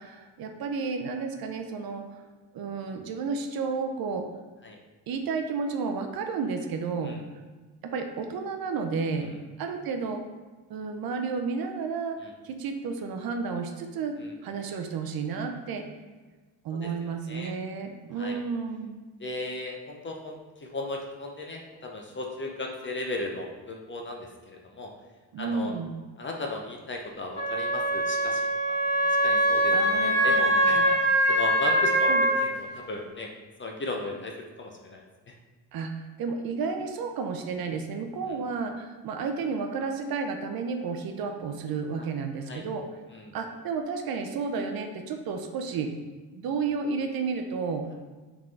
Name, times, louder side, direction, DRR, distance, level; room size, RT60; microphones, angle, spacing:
voice 1, 0.0-2.2 2.5-4.3 5.1-7.1 7.8-9.3 9.6-10.2 10.7-14.2 14.4-15.8 16.6-19.0 25.3-25.9 29.7-30.9 32.1-32.2 35.7-42.8 43.3-45.9 46.3-47.8, right 5 dB, 55° right, 5 dB, 0.5 m, -32 dB
voice 2, 16.8-17.5 18.2-18.4 19.2-24.9 25.4-25.7 26.2-28.8 29.0-32.1 32.4-33.3 33.6-35.3 42.0-42.1 42.5-42.6 43.1-43.3, left 2 dB, 25° left, 1 dB, 0.5 m, -36 dB
Wind instrument woodwind instrument, 27.4-32.5, right 1 dB, 15° right, 1.3 m, -23 dB
3.6 x 3.6 x 3.2 m, 1.3 s
cardioid pair, 105°, 45 cm